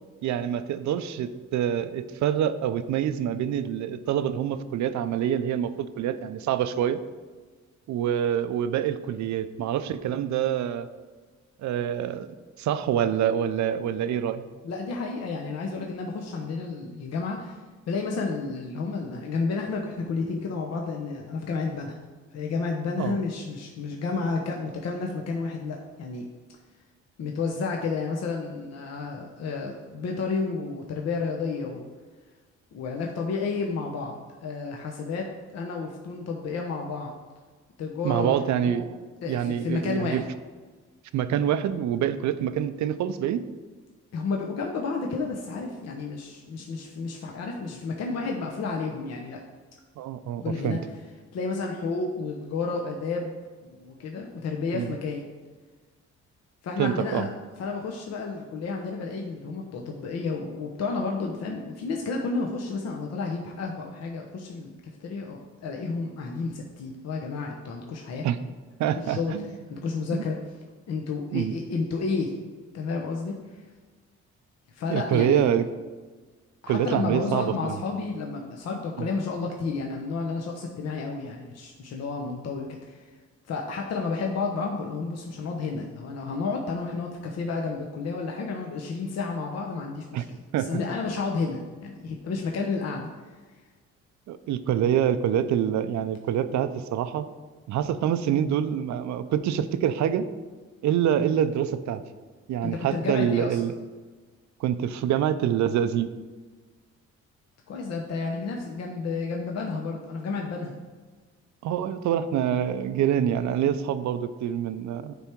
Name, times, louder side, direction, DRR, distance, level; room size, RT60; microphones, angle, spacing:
voice 1, 0.2-7.0 7.9-10.9 11.6-12.3 12.6-14.4 23.0-23.2 38.0-38.9 39.3-40.2 41.1-43.4 50.0-50.8 54.7-54.9 56.8-57.3 68.2-68.4 68.8-69.5 70.1-70.2 71.3-71.5 74.9-75.7 76.7-77.8 79.0-79.1 90.1-90.2 90.5-90.7 94.3-97.3 97.7-100.2 100.8-102.0 102.5-103.7 104.6-106.1 111.6-115.1, right 10 dB, 70° right, 12 dB, 0.5 m, -26 dB
voice 2, 14.6-22.0 22.3-26.2 27.2-31.9 32.7-37.2 37.8-38.8 39.2-40.2 44.1-49.4 50.4-50.8 51.3-53.4 53.8-55.2 56.6-57.3 57.6-68.2 68.8-69.3 69.7-70.4 70.9-73.4 74.7-75.5 76.6-83.1 83.5-93.1 102.6-103.6 107.7-110.8, left 4 dB, 55° left, 1 dB, 0.8 m, -31 dB
9.2 x 3.5 x 4.5 m, 1.4 s
cardioid pair, 90°, 30 cm